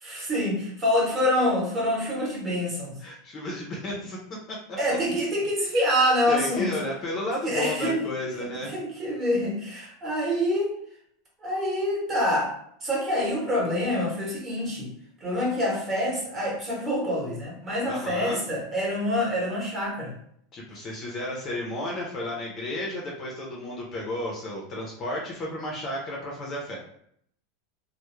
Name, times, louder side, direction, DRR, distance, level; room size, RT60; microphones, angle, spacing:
voice 1, 0.0-3.0 4.8-6.7 7.4-8.0 8.4-10.8 11.4-14.9 15.2-20.1, left 1 dB, 20° right, -3 dB, 0.8 m, -26 dB
voice 2, 3.0-4.2 4.5-4.8 6.3-8.7 17.9-18.4 20.5-26.8, left 1 dB, 25° left, -2 dB, 0.5 m, -33 dB
2.2 x 2.0 x 2.9 m, 0.68 s
supercardioid pair, 165°, 0 cm